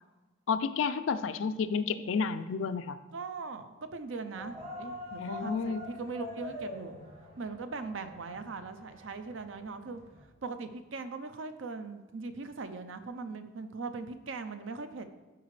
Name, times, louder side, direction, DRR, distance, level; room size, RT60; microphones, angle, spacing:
voice 1, 0.5-3.0 5.2-5.9, left 5 dB, 80° left, 11 dB, 0.4 m, -31 dB
voice 2, 3.1-7.0 7.4-10.0 10.4-15.1, right 4 dB, 80° right, 9 dB, 0.6 m, -40 dB
sound 1, 4.3-10.2, left 2 dB, 50° right, 2.2 m, -45 dB
12.5 x 4.9 x 3.2 m, 1.2 s
head